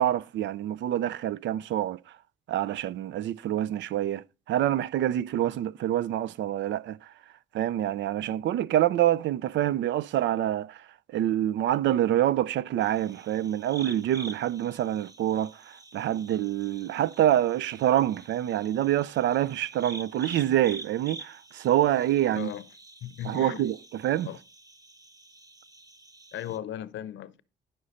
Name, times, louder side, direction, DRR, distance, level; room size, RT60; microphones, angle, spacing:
voice 1, 0.0-2.0 2.5-7.1 7.5-10.8 11.1-22.5 23.3-23.7 24.0-24.3, right 12 dB, 70° right, 0.4 m, -26 dB
sound 1, 12.8-26.6, right 3 dB, 20° right, 0.8 m, -47 dB
voice 2, 22.3-22.7 23.0-23.6 24.2-24.4 26.3-27.4, left 11 dB, 70° left, 0.6 m, -37 dB
10.0 x 6.3 x 4.1 m
cardioid pair, 90°, 20 cm